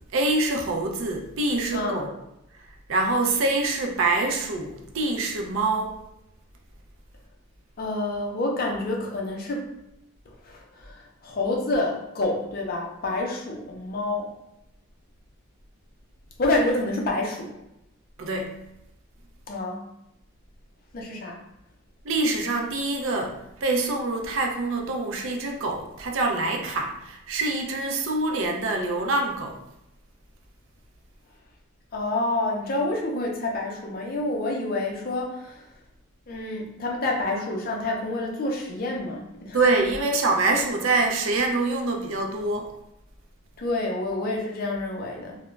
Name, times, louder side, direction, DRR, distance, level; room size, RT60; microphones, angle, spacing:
voice 1, 0.1-2.2 2.9-6.0 18.2-18.5 22.0-29.6 39.5-42.7, right 2 dB, 65° right, 2 dB, 0.4 m, -25 dB
voice 2, 7.8-9.7 10.4-14.3 16.4-17.6 19.5-19.8 20.9-21.4 31.9-35.7 36.3-39.6 43.6-45.4, left 2 dB, 40° left, -1 dB, 0.4 m, -28 dB
2.3 x 2.0 x 3.1 m, 0.85 s
head